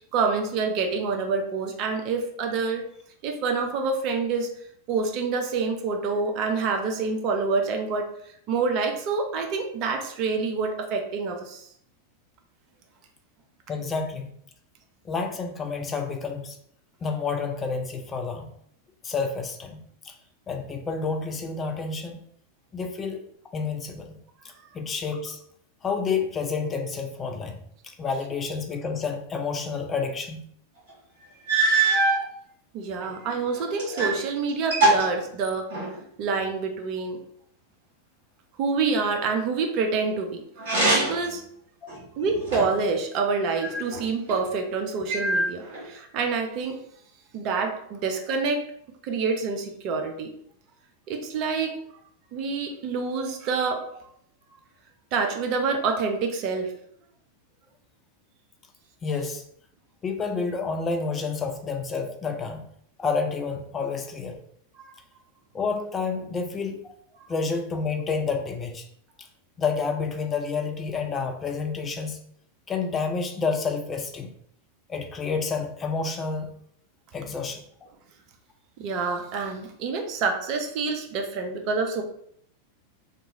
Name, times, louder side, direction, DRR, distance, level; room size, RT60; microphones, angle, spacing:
voice 1, 0.0-2.8 3.2-4.5 4.9-8.1 8.5-11.7 32.7-35.8 36.2-37.2 38.6-40.4 40.9-41.4 42.2-46.8 47.3-48.6 49.0-50.3 51.1-51.8 52.3-53.9 55.1-56.7 64.8-64.9 78.8-82.0, right 4 dB, 40° right, 4 dB, 0.5 m, -27 dB
voice 2, 13.7-14.3 15.0-16.6 17.0-18.5 19.0-20.1 20.5-22.2 22.7-23.2 23.5-24.2 24.7-25.4 25.8-30.4 41.8-41.9 59.0-59.4 60.0-62.6 63.0-64.4 65.5-66.8 67.3-68.9 69.6-72.2 72.7-74.3 74.9-76.6 77.1-77.6, left 5 dB, 20° left, 4 dB, 0.5 m, -29 dB
sound 1, 30.9-31.0 31.5-32.2 33.0-34.2 34.5-36.0 40.6-41.3 41.9-42.9 43.6-44.4 45.1-45.8, right 2 dB, 55° right, 1.4 m, -24 dB
2.9 x 2.3 x 2.8 m, 0.67 s
figure-of-eight pair, 90°, 0 cm